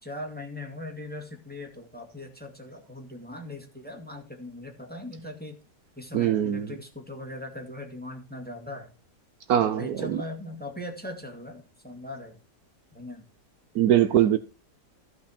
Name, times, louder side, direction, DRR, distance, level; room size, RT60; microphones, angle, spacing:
voice 1, 0.0-5.6 6.0-8.9 9.6-12.4 12.9-13.3, left 1 dB, 5° left, 1.9 m, -40 dB
voice 2, 6.1-6.7 9.5-10.2 13.7-14.4, right 11 dB, 70° right, 1.1 m, -22 dB
15.0 x 5.8 x 4.3 m
omnidirectional pair, 1.8 m